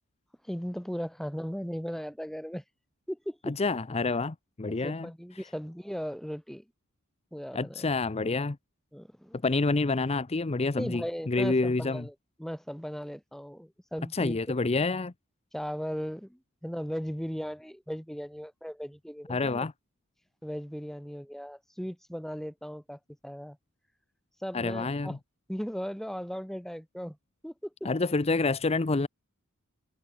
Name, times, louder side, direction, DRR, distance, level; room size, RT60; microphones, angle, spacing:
voice 1, 0.4-2.6 3.1-3.6 4.8-6.7 7.3-7.9 8.9-9.4 10.8-14.4 15.5-19.7 20.4-23.6 24.4-25.2 25.5-27.2 27.4-27.7, equal, ahead, 1.9 m, -37 dB
voice 2, 3.5-5.1 7.5-8.6 9.4-12.1 14.1-15.1 19.3-19.7 24.5-25.2 27.8-29.1, left 3 dB, 30° left, 0.6 m, -28 dB
head